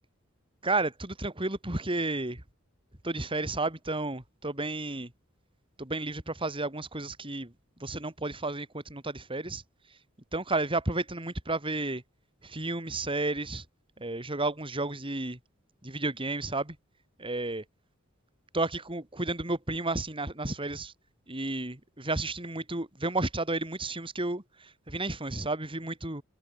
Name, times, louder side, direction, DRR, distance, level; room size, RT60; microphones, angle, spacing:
voice 1, 0.6-2.4 3.0-5.1 5.8-7.5 7.8-9.6 9.9-10.0 10.3-12.0 12.4-13.6 14.0-15.4 15.8-16.8 17.2-17.6 18.5-20.9 21.3-26.2, right 2 dB, 25° right, 3.5 m, -32 dB
head